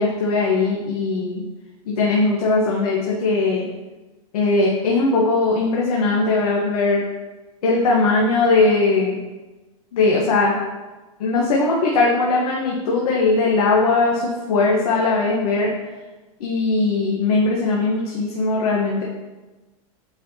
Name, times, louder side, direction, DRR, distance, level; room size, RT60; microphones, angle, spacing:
voice 1, 0.0-1.4 1.9-3.7 4.3-7.0 7.6-9.2 9.9-10.6 11.2-15.7 16.4-19.0, left 3 dB, 85° left, -3 dB, 1.1 m, -19 dB
8.3 x 4.2 x 2.8 m, 1.2 s
supercardioid pair, 165°, 18 cm